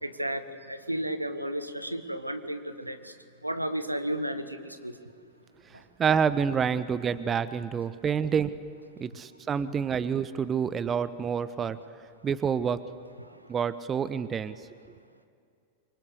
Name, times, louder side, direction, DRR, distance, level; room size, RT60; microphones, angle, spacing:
voice 1, 0.0-3.1 3.4-5.1 13.2-13.4, right 1 dB, 85° right, 10 dB, 1.5 m, -33 dB
voice 2, 6.0-8.5 9.0-11.8 12.2-12.8 13.5-14.6, right 7 dB, 20° right, 14 dB, 1.0 m, -27 dB
27.5 x 25.0 x 8.4 m, 2.4 s
figure-of-eight pair, 90°, 0 cm